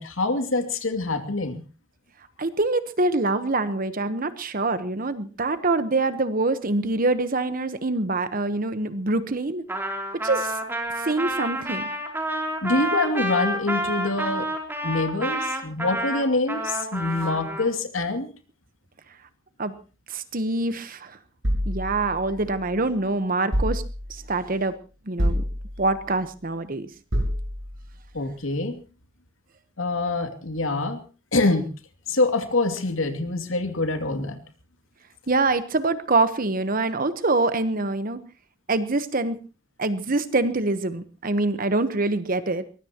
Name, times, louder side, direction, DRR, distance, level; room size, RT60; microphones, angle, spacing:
voice 1, 0.0-1.6 12.6-14.5 14.8-18.3 28.1-28.8 29.8-31.0 31.3-31.7 32.1-34.4, left 2 dB, 80° left, 7 dB, 2.6 m, -25 dB
voice 2, 2.4-9.6 10.2-10.6 11.0-11.8 19.6-19.7 20.1-21.2 21.6-23.8 24.1-24.7 25.1-25.4 25.8-26.9 35.3-38.2 38.7-39.4 39.8-42.7, right 2 dB, 45° right, 11 dB, 1.1 m, -25 dB
Trumpet, 9.7-17.7, right 1 dB, 10° right, 3.2 m, -29 dB
sound 1, 21.4-22.8 23.5-24.4 25.2-26.1 27.1-27.9, equal, 75° right, 6.9 m, -27 dB
23.0 x 20.0 x 3.0 m, 0.35 s
head